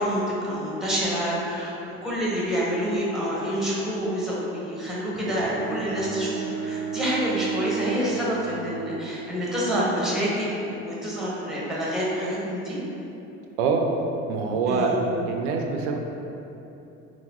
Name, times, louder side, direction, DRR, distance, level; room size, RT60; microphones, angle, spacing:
voice 1, 0.0-12.8 14.7-15.0, equal, ahead, -6 dB, 0.9 m, -27 dB
Bowed string instrument, 5.1-9.4, right 7 dB, 25° right, 0.5 m, -33 dB
voice 2, 13.6-13.9 14.3-15.0 15.2-16.0, right 5 dB, 80° right, 2 dB, 0.5 m, -24 dB
3.9 x 2.1 x 2.9 m, 2.9 s
hypercardioid pair, 80°, 35 cm